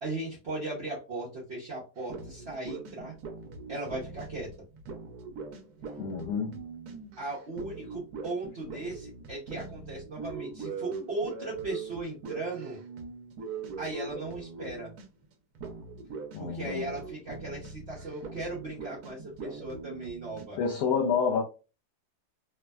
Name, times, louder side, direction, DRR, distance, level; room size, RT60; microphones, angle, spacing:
voice 1, 0.0-3.1 3.7-4.5 7.2-12.8 13.8-14.9 16.4-20.6, right 2 dB, 50° right, 0.9 m, -37 dB
sound 1, 2.0-15.2 15.5-20.5, right 4 dB, 75° right, 1.1 m, -42 dB
voice 2, 6.0-6.6 16.3-17.0 20.6-21.4, left 6 dB, 70° left, 1.0 m, -28 dB
3.4 x 2.1 x 2.2 m
omnidirectional pair, 1.7 m